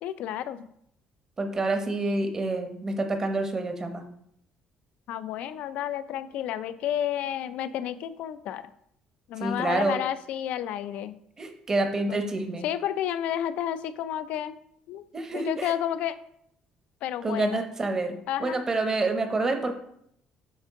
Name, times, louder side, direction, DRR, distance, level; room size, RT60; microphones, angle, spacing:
voice 1, 0.0-0.7 5.1-8.6 9.3-11.2 12.1-12.2 12.6-14.6 14.9-15.1 15.3-16.2 17.0-17.6 18.3-18.6, left 10 dB, 75° left, 13 dB, 0.4 m, -31 dB
voice 2, 1.4-4.0 9.4-10.0 11.4-12.7 15.1-15.7 17.2-19.7, right 2 dB, 25° right, 5 dB, 0.9 m, -28 dB
8.6 x 3.7 x 3.7 m, 0.73 s
cardioid pair, 125°, 2 cm